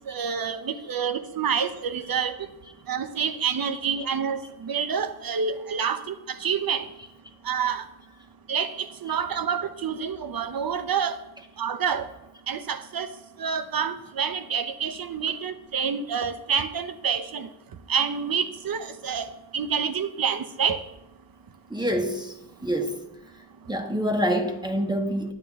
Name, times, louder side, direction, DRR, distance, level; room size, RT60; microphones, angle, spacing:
voice 1, 0.1-2.3 2.9-6.1 6.4-6.8 7.5-7.8 8.5-8.7 9.0-11.2 11.6-12.0 12.5-13.1 13.4-17.5 17.9-19.3 19.5-20.8, right 7 dB, 65° right, 0.8 m, -27 dB
voice 2, 21.7-22.3 22.6-23.0 23.7-25.3, equal, 10° right, 1.2 m, -26 dB
10.5 x 8.8 x 3.5 m
cardioid pair, 70°, 38 cm